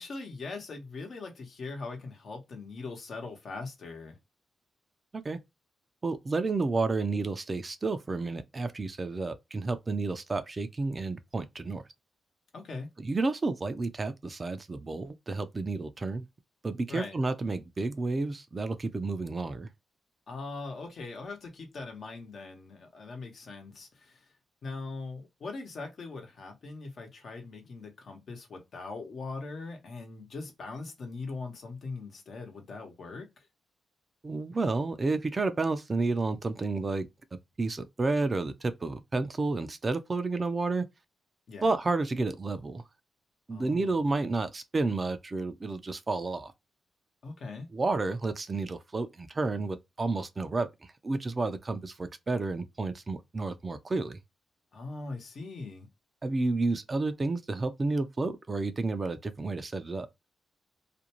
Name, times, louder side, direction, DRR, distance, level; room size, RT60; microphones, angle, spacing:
voice 1, 0.0-4.2 12.5-12.9 16.9-17.2 20.3-24.3 24.6-33.5 41.5-41.7 43.5-44.0 47.2-47.7 54.7-55.9, left 3 dB, 65° left, 0.9 m, -41 dB
voice 2, 6.0-11.8 13.0-16.2 16.6-19.7 34.2-37.1 37.6-40.9 41.6-42.8 43.5-46.5 47.7-50.7 51.0-54.2 56.2-60.1, right 3 dB, 35° right, 0.4 m, -31 dB
2.5 x 2.2 x 2.9 m
cardioid pair, 70°, 0 cm